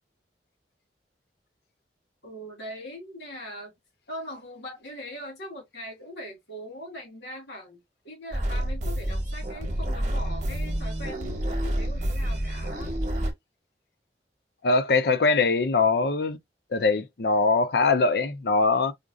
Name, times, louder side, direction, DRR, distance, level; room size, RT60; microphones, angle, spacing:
voice 1, 2.2-3.7 4.1-12.9, equal, 75° left, 2.2 m, -41 dB
sound 1, 8.3-13.3, right 1 dB, 40° right, 0.9 m, -28 dB
voice 2, 14.6-16.4 16.7-18.9, left 3 dB, 60° left, 0.5 m, -22 dB
5.0 x 2.4 x 2.4 m
head